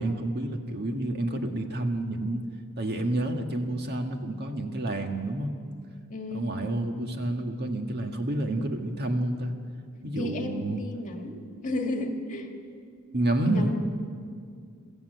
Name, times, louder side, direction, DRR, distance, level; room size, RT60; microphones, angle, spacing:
voice 1, 0.0-2.4 2.8-5.5 6.3-9.5 10.0-10.8 13.1-13.7, right 1 dB, 50° right, 4 dB, 1.7 m, -29 dB
voice 2, 6.1-6.5 10.1-12.5 13.4-13.8, left 2 dB, 35° left, 3 dB, 2.1 m, -33 dB
23.5 x 14.5 x 8.1 m, 2.2 s
head